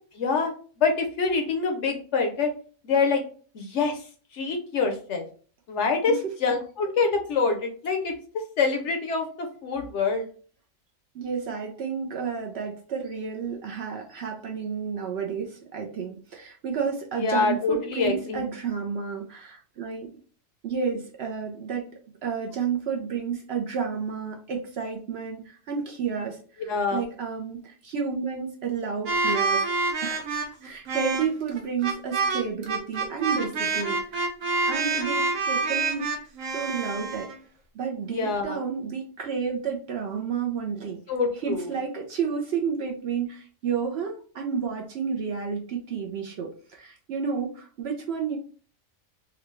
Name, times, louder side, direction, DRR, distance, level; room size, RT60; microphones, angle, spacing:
voice 1, 0.1-0.5 0.8-2.5 2.8-3.2 3.5-4.0 4.3-5.2 5.7-6.1 6.4-8.1 8.6-10.3 17.2-18.4 26.7-27.0 38.1-38.6 41.1-41.7, left 4 dB, 65° left, 4 dB, 0.9 m, -25 dB
voice 2, 11.1-20.1 20.6-21.9 22.2-29.7 30.0-30.2 30.6-34.0 34.7-36.0 36.5-37.3 37.7-41.0 41.3-48.4, right 6 dB, 60° right, 1 dB, 0.7 m, -31 dB
sound 1, 29.1-37.4, right 3 dB, 75° right, 1.1 m, -27 dB
3.8 x 2.2 x 3.1 m, 0.42 s
omnidirectional pair, 1.4 m